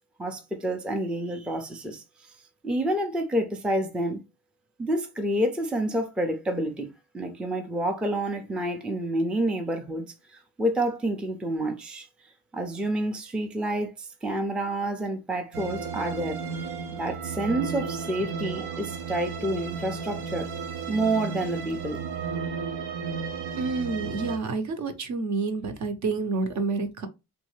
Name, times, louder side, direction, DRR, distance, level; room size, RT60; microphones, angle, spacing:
voice 1, 0.2-2.3 2.6-4.2 4.8-12.1 12.5-20.5 20.9-22.0, right 1 dB, 5° right, 0.4 m, -29 dB
sound 1, 15.5-24.4, right 5 dB, 90° right, 0.8 m, -34 dB
voice 2, 23.6-27.1, right 3 dB, 50° right, 0.8 m, -29 dB
3.2 x 2.6 x 3.1 m
cardioid pair, 105°, 38 cm